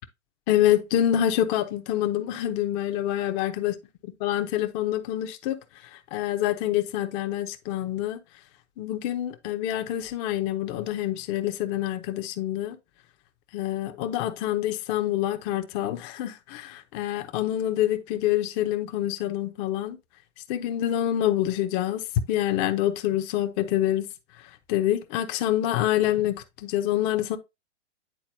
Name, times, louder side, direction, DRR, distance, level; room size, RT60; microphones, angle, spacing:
voice 1, 0.5-3.7 4.2-5.6 5.9-8.2 8.8-12.8 13.5-20.0 20.5-24.1 24.7-27.4, left 12 dB, 30° left, 0.7 m, -26 dB
9.2 x 4.0 x 2.7 m
hypercardioid pair, 115°, 35 cm